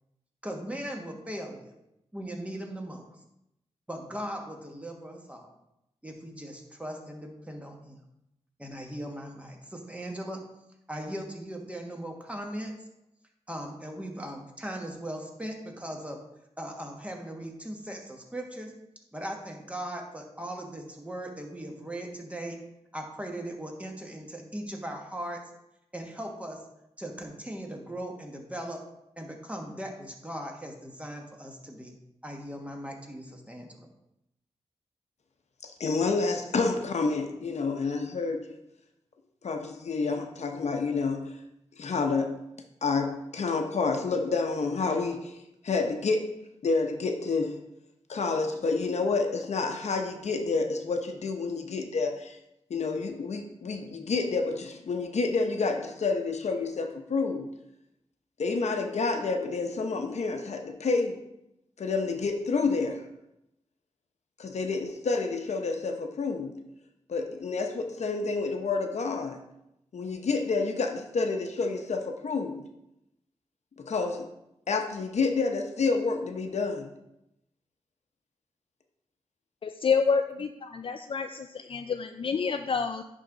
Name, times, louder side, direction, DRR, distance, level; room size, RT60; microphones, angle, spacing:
voice 1, 0.4-1.7 2.1-3.1 3.9-5.5 6.0-8.0 8.6-10.4 10.9-12.8 13.5-16.2 16.6-18.7 19.1-22.6 22.9-25.5 25.9-26.6 27.0-28.8 29.2-31.9 32.2-33.9, right 1 dB, 10° right, 2 dB, 1.3 m, -38 dB
voice 2, 35.6-38.6 39.4-41.3 41.8-42.4 42.8-46.3 46.6-47.6 48.1-52.4 52.7-57.5 58.4-61.2 61.8-63.0 64.4-66.6 67.1-69.4 69.9-72.6 73.8-74.3 74.7-76.9, left 4 dB, 70° left, 5 dB, 0.8 m, -29 dB
voice 3, 79.6-83.0, left 5 dB, 50° left, 7 dB, 0.3 m, -28 dB
10.5 x 3.7 x 3.9 m, 0.84 s
cardioid pair, 70°, 12 cm